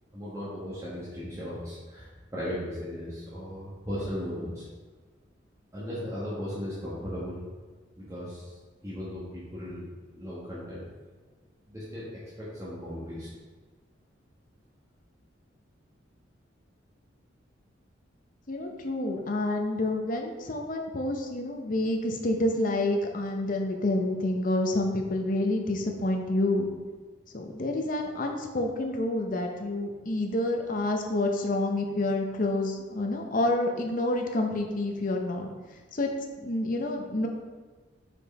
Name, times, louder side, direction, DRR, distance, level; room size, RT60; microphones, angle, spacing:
voice 1, 0.1-4.6 5.7-7.4 8.0-9.8 10.1-10.8 11.7-13.3, equal, 15° right, -10 dB, 1.2 m, -37 dB
voice 2, 18.5-26.7 27.3-35.5 35.9-36.1 36.4-37.3, left 1 dB, 45° left, 3 dB, 0.7 m, -28 dB
5.2 x 4.8 x 4.1 m, 1.4 s
head